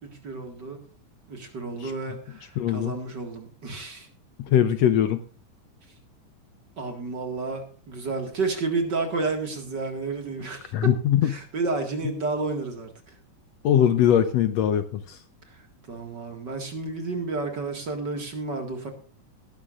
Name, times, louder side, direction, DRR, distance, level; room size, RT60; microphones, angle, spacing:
voice 1, 0.0-0.8 1.3-4.1 6.8-10.9 11.2-13.2 15.5-18.9, right 3 dB, 40° right, 4 dB, 2.3 m, -31 dB
voice 2, 2.6-2.9 4.4-5.2 10.7-11.3 13.6-15.2, left 10 dB, 70° left, 10 dB, 1.7 m, -21 dB
19.0 x 12.0 x 2.5 m, 0.40 s
omnidirectional pair, 3.4 m